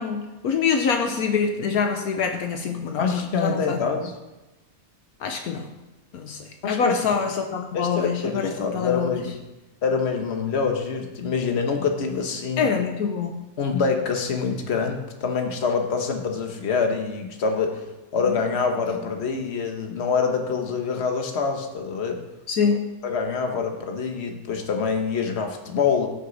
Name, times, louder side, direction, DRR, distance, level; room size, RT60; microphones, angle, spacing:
voice 1, 0.0-3.1 3.4-3.8 5.2-5.7 6.1-9.1 12.6-13.4 22.5-22.9, left 6 dB, 75° left, 4 dB, 1.3 m, -25 dB
voice 2, 3.0-4.2 6.6-7.0 7.7-9.4 9.8-12.7 13.6-17.9 18.1-22.2 23.0-26.1, left 5 dB, 45° left, 4 dB, 1.4 m, -25 dB
18.5 x 6.5 x 4.1 m, 1.1 s
omnidirectional pair, 1.6 m